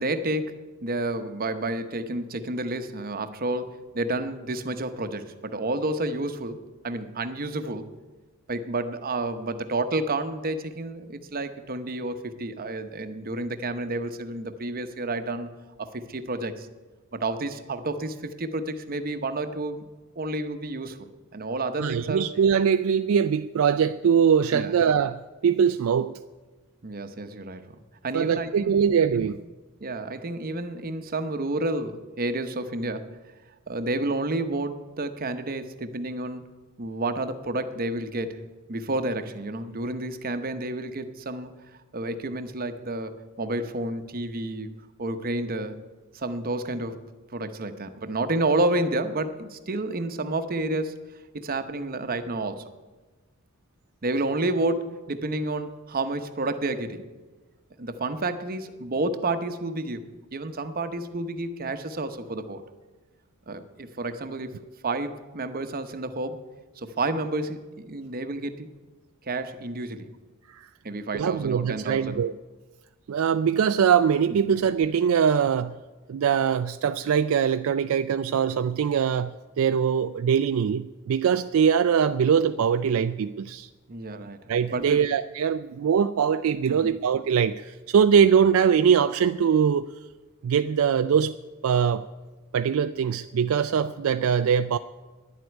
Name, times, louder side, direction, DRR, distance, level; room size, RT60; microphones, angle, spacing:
voice 1, 0.0-6.6 6.8-7.9 8.5-15.5 15.8-16.7 17.1-19.8 20.2-21.1 21.3-22.3 24.5-24.8 26.8-27.6 28.0-28.8 29.1-29.3 29.8-33.1 33.7-36.4 36.8-38.4 38.7-41.5 41.9-43.1 43.4-44.7 45.0-45.8 46.1-47.0 47.3-51.0 51.3-52.6 54.0-57.1 57.8-62.6 63.5-64.6 64.8-66.4 66.8-68.7 69.3-70.1 70.8-72.2 74.4-74.5 83.9-84.4 84.7-85.0 86.7-87.0, right 2 dB, 40° right, 10 dB, 0.8 m, -30 dB
voice 2, 21.8-26.1 28.1-29.4 70.5-70.7 71.1-72.3 73.1-75.8 76.1-83.7 84.5-89.8 90.4-91.3 91.6-92.1 92.5-94.8, right 7 dB, 65° right, 10 dB, 0.3 m, -22 dB
10.5 x 7.8 x 9.5 m, 1.2 s
head